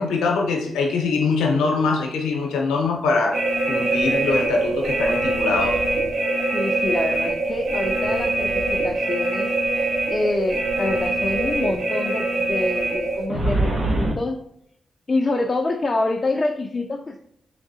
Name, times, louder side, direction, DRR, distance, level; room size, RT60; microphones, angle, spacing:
voice 1, 0.0-3.4 3.7-5.8, left 4 dB, 90° left, 1 dB, 0.7 m, -23 dB
sound 1, 3.3-14.1, right 2 dB, 65° right, 0.8 m, -23 dB
voice 2, 6.5-14.4 15.1-17.2, left 2 dB, 40° left, 2 dB, 0.4 m, -26 dB
3.5 x 3.2 x 2.7 m, 0.71 s
supercardioid pair, 50°, 0 cm